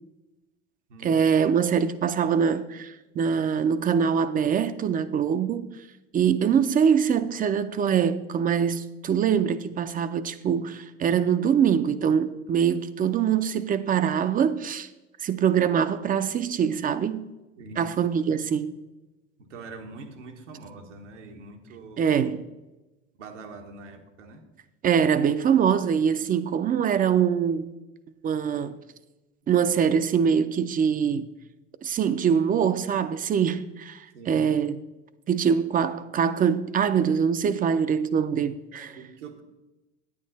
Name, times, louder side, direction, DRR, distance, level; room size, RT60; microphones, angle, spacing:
voice 1, 1.0-5.7 6.1-14.9 15.2-17.3 17.8-18.8 22.0-22.4 24.8-27.7 28.2-28.8 29.5-31.3 31.8-34.8 35.3-38.9, right 7 dB, 25° right, 0.5 m, -23 dB
voice 2, 17.6-18.0 19.4-22.1 23.2-24.4 34.1-34.5 38.7-39.4, right 4 dB, 80° right, 1.5 m, -43 dB
9.5 x 8.8 x 4.0 m
hypercardioid pair, 90°, 37 cm